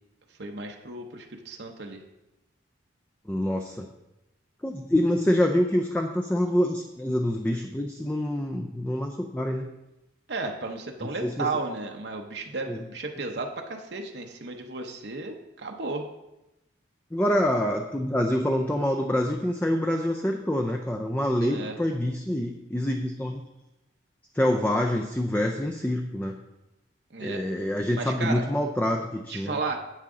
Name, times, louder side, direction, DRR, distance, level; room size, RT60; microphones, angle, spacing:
voice 1, 0.3-2.0 10.3-16.0 21.4-21.8 27.1-27.4 27.9-28.4 29.3-29.8, right 3 dB, 60° right, 3 dB, 0.8 m, -34 dB
voice 2, 3.3-3.9 4.6-9.7 11.0-11.5 12.7-12.8 17.1-23.4 24.3-26.4 27.2-29.6, left 1 dB, 10° left, 2 dB, 0.4 m, -26 dB
9.8 x 8.1 x 3.7 m, 0.96 s
head